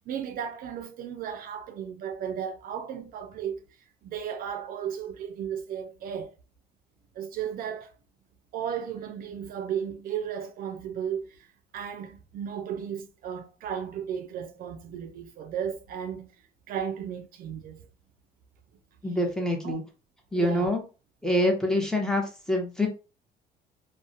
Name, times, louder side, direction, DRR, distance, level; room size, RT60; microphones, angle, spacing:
voice 1, 0.1-3.6 4.0-6.3 7.1-7.9 8.5-11.5 11.7-16.3 16.7-17.8 19.6-19.8 20.4-20.7, right 8 dB, 60° right, 0.4 m, -34 dB
voice 2, 19.0-19.8 20.3-20.8 21.2-22.9, left 1 dB, 5° left, 0.7 m, -25 dB
2.3 x 2.0 x 2.6 m
cardioid pair, 110°, 17 cm